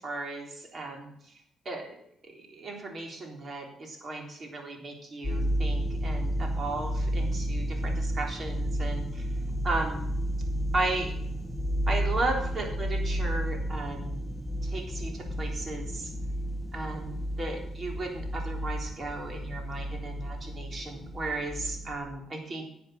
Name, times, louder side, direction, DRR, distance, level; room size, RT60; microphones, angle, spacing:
voice 1, 0.0-1.1 1.7-1.9 2.3-9.3 9.6-10.0 10.7-11.1 11.9-14.3 14.6-16.1 16.7-22.7, right 2 dB, 40° right, 2 dB, 3.7 m, -35 dB
sound 1, 5.2-22.0, equal, 5° left, 1.8 m, -32 dB
11.0 x 7.9 x 6.7 m, 0.72 s
cardioid pair, 90°, 0 cm